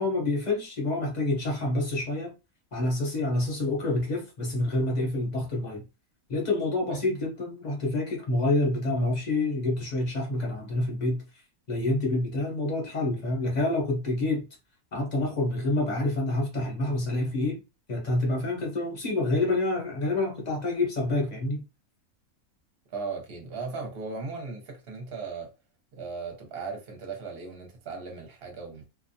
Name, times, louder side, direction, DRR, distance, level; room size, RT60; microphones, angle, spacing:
voice 1, 0.0-2.3 2.7-5.8 6.3-11.2 11.7-14.5 14.9-17.6 17.9-21.6, left 2 dB, 35° left, 0.8 m, -27 dB
voice 2, 22.9-25.5 25.9-28.8, right 4 dB, 50° right, 0.9 m, -37 dB
2.5 x 2.2 x 2.7 m
omnidirectional pair, 1.5 m